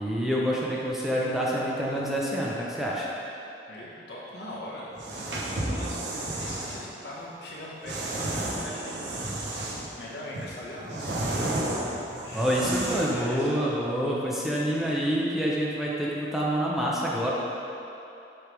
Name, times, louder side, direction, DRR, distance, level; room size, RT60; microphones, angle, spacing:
voice 1, 0.0-3.1 12.3-17.3, equal, ahead, -5 dB, 0.6 m, -27 dB
voice 2, 3.7-6.0 6.4-9.5 10.0-11.7 12.2-13.5 14.8-15.2, left 1 dB, 75° left, -5 dB, 1.3 m, -41 dB
sound 1, 4.9-6.8 7.9-9.9 10.3-13.2, right 1 dB, 90° right, 0.8 m, -32 dB
6.7 x 3.4 x 4.7 m, 2.8 s
head